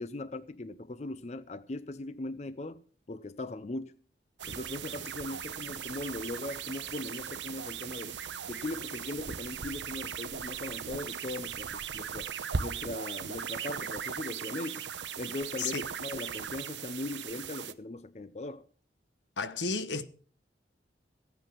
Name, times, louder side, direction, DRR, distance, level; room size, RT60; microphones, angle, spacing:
voice 1, 0.0-2.8 3.1-4.0 4.4-8.2 8.4-14.9 15.2-18.7, left 2 dB, 40° left, 0.5 m, -39 dB
sound 1, 4.4-17.7, right 7 dB, 90° right, 0.9 m, -38 dB
voice 2, 19.4-20.1, left 4 dB, 90° left, 1.1 m, -32 dB
15.0 x 9.1 x 6.0 m
head